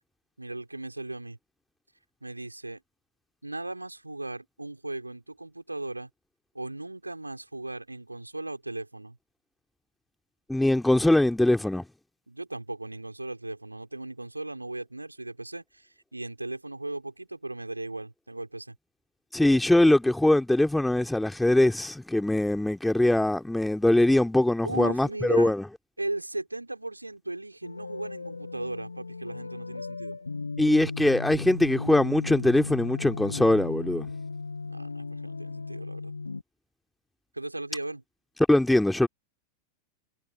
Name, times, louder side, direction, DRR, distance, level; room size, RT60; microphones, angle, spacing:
voice 1, 0.4-1.4 2.2-2.8 3.4-6.1 6.5-9.2 12.3-18.8 24.6-25.5 26.0-30.2 34.6-36.1 37.3-38.0, right 2 dB, 85° right, 5.3 m, -37 dB
voice 2, 10.5-11.8 19.3-25.6 30.6-34.1 38.5-39.1, left 1 dB, 5° left, 3.1 m, -22 dB
sound 1, 27.6-36.4, left 4 dB, 80° left, 6.1 m, -36 dB
figure-of-eight pair, 90°, 0 cm